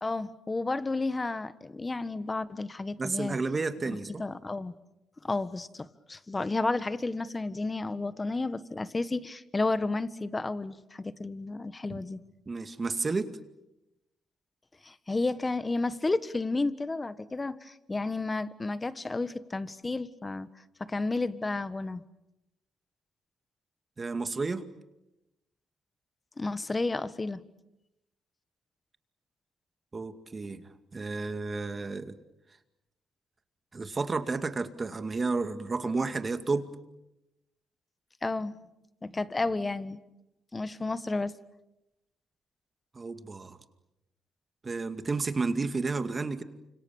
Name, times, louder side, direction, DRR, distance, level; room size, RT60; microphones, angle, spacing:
voice 1, 0.0-3.4 3.9-4.7 5.2-12.2 14.8-20.5 20.9-22.0 26.4-27.4 38.2-38.5 39.0-40.0 40.5-41.3, left 3 dB, 20° left, 14 dB, 1.5 m, -32 dB
voice 2, 3.0-4.2 11.9-12.0 12.5-13.3 24.0-24.6 29.9-30.6 30.9-32.1 33.7-36.7 42.9-43.6 44.6-46.4, right 3 dB, 30° right, 10 dB, 2.2 m, -31 dB
29.0 x 26.5 x 7.3 m, 0.90 s
cardioid pair, 90°, 0 cm